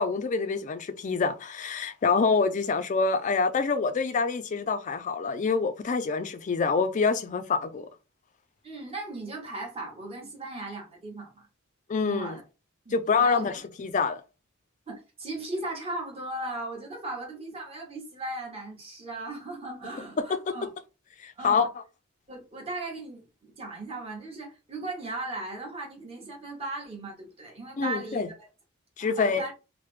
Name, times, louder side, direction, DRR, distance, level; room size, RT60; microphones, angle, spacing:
voice 1, 0.0-7.9 11.9-12.4 12.9-13.5 13.8-14.2 20.5-20.6 21.2-21.7 27.8-28.3 29.0-29.4, left 4 dB, 35° left, 0.3 m, -26 dB
voice 2, 8.6-11.5 12.0-12.4 12.8-13.6 14.9-20.7 21.4-21.7 22.3-28.3 29.0-29.5, right 2 dB, 25° right, 1.0 m, -37 dB
3.1 x 2.1 x 3.0 m
head